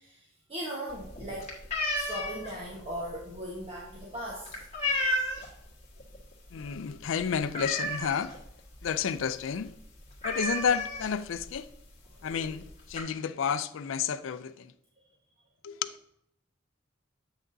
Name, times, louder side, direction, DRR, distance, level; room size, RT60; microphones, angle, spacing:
voice 1, 0.0-1.5 1.9-4.6, equal, 30° right, 1.2 m, -38 dB
sound 1, 0.9-5.6 6.0-6.3 6.6-6.7 7.1-8.4 8.8-8.9 9.2-9.4 9.7-9.8 10.2-11.4 12.2-12.3 12.6-13.0, left 1 dB, 35° left, 1.5 m, -32 dB
voice 2, 6.5-8.4 8.8-9.7 10.2-11.7 12.2-14.7 15.6-16.0, left 7 dB, 80° left, 0.4 m, -31 dB
8.0 x 6.0 x 2.6 m
head